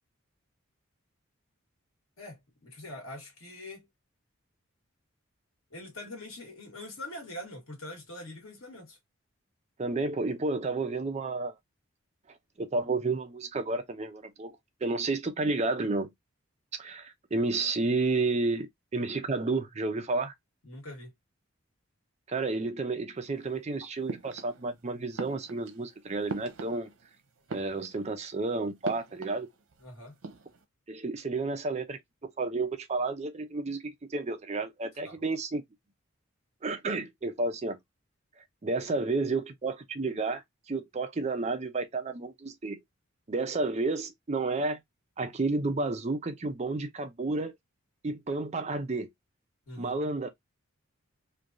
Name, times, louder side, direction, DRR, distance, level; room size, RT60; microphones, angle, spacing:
voice 1, 2.2-3.9 5.7-9.0 20.6-21.1 29.8-30.2 35.0-35.2 49.7-50.0, left 1 dB, 85° left, 1.5 m, -43 dB
voice 2, 9.8-11.6 12.6-16.1 16.8-20.3 22.3-26.9 27.5-29.5 30.9-35.7 36.6-37.8 38.6-42.8 43.3-44.8 45.2-47.5 48.0-49.1 49.8-50.3, right 3 dB, 30° right, 0.5 m, -31 dB
sound 1, 24.1-24.8 25.1-27.1 27.4-28.2 28.8-29.8 30.1-30.6, right 3 dB, 90° right, 0.7 m, -42 dB
3.2 x 2.3 x 2.5 m
head